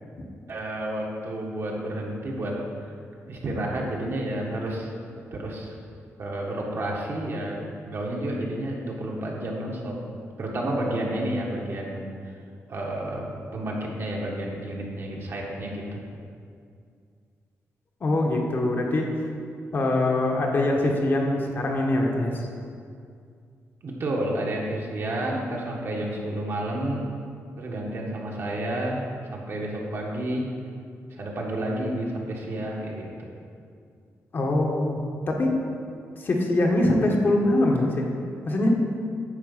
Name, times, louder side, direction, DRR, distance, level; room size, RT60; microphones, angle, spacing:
voice 1, 0.5-2.6 3.3-4.9 5.3-5.7 6.2-7.6 7.9-10.0 10.4-12.1 12.7-16.0 23.8-27.0 27.6-30.5 31.1-33.1, right 1 dB, 50° right, -2 dB, 1.6 m, -30 dB
voice 2, 18.0-19.1 19.7-22.4 34.3-35.0 35.3-35.6 36.2-38.1 38.4-38.7, left 1 dB, 40° left, 0 dB, 1.2 m, -23 dB
10.0 x 4.5 x 7.3 m, 2.3 s
wide cardioid pair, 150°, 5 cm